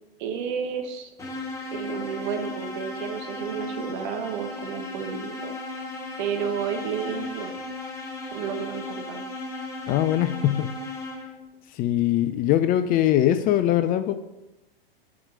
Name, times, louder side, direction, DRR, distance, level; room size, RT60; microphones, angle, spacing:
voice 1, 0.2-1.1 1.7-5.5 6.2-7.5 8.3-9.3, right 7 dB, 50° right, 5 dB, 1.4 m, -31 dB
sound 1, 1.2-11.5, left 2 dB, 10° left, 1.8 m, -36 dB
voice 2, 9.9-10.7 11.7-14.1, left 12 dB, 30° left, 10 dB, 0.5 m, -22 dB
7.3 x 4.8 x 6.6 m, 0.98 s
hypercardioid pair, 110°, 30 cm